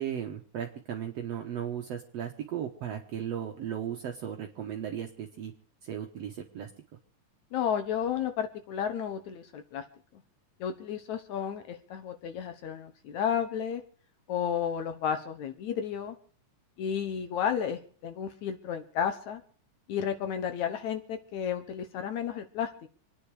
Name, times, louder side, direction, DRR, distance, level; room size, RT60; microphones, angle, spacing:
voice 1, 0.0-5.5 5.8-6.7, right 9 dB, 60° right, 3 dB, 2.1 m, -36 dB
voice 2, 7.5-9.8 10.6-13.8 14.3-16.2 16.8-19.4 19.9-22.7, left 8 dB, 70° left, 7 dB, 2.5 m, -32 dB
26.5 x 9.8 x 4.9 m, 0.41 s
omnidirectional pair, 3.5 m